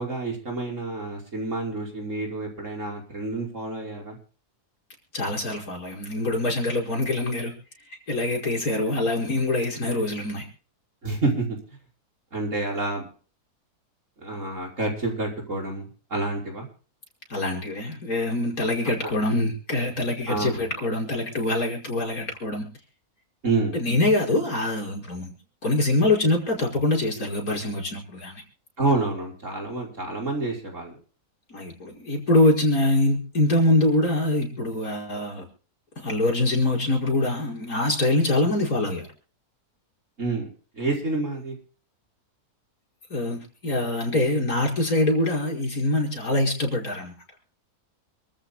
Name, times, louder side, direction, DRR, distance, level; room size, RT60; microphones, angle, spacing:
voice 1, 0.0-4.2 11.0-11.6 12.3-13.1 14.2-16.7 20.3-20.6 23.4-23.8 28.8-30.9 40.2-40.5 40.7-41.6, right 2 dB, 55° right, 1 dB, 6.0 m, -28 dB
voice 2, 5.1-7.5 8.1-10.5 17.3-22.6 23.7-25.3 25.6-28.4 31.5-35.4 36.0-39.1 43.1-47.1, left 2 dB, 70° left, 0 dB, 5.8 m, -24 dB
28.0 x 14.0 x 2.2 m, 0.40 s
omnidirectional pair, 1.6 m